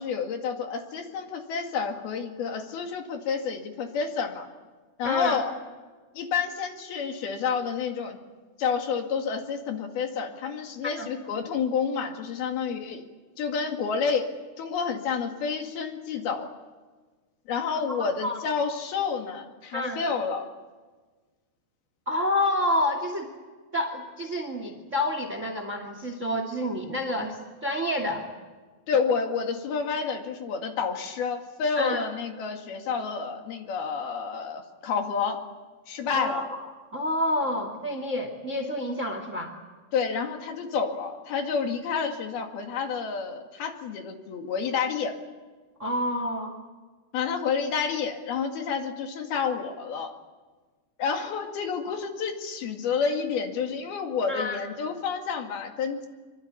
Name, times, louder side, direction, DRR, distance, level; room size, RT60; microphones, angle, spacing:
voice 1, 0.0-4.5 5.0-5.6 6.2-8.2 8.6-13.1 13.4-14.3 14.6-16.5 17.5-20.5 28.9-35.4 35.9-36.5 39.9-45.2 47.1-50.1 51.0-56.1, left 6 dB, 65° left, 4 dB, 4.0 m, -29 dB
voice 2, 5.0-5.4 10.8-11.1 18.2-18.4 19.7-20.0 22.1-23.3 23.7-27.4 27.6-28.2 31.8-32.0 36.1-39.5 45.8-46.5 51.9-52.0 54.3-54.6, left 1 dB, 25° right, 6 dB, 1.9 m, -28 dB
25.0 x 24.0 x 8.6 m, 1.3 s
omnidirectional pair, 4.8 m